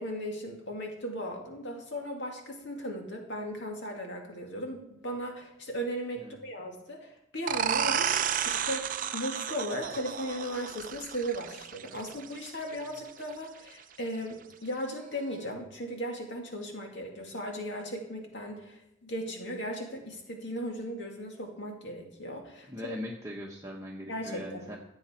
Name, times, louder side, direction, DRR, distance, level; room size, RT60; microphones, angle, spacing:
voice 1, 0.0-23.0 24.1-24.8, equal, 60° left, 1 dB, 2.3 m, -37 dB
sound 1, 7.5-12.9, right 8 dB, 45° right, 0.5 m, -32 dB
voice 2, 22.7-24.8, left 1 dB, 15° right, -2 dB, 1.1 m, -40 dB
16.0 x 7.9 x 4.5 m, 0.86 s
head